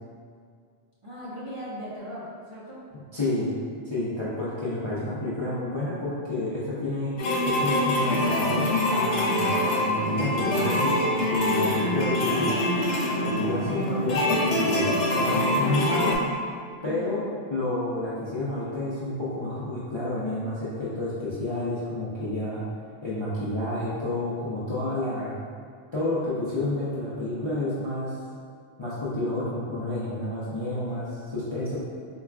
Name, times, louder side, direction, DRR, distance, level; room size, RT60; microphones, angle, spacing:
voice 1, 1.0-2.8 16.8-17.1, equal, 40° right, -10 dB, 0.5 m, -38 dB
voice 2, 3.1-3.5 3.8-12.6 13.2-16.2 16.8-22.6 23.0-25.4 25.9-28.2 28.8-31.8, left 1 dB, 40° left, -10 dB, 0.4 m, -30 dB
sound 1, 7.2-16.2, left 1 dB, 80° left, 0.9 m, -24 dB
4.4 x 2.3 x 2.3 m, 2.1 s
omnidirectional pair, 1.2 m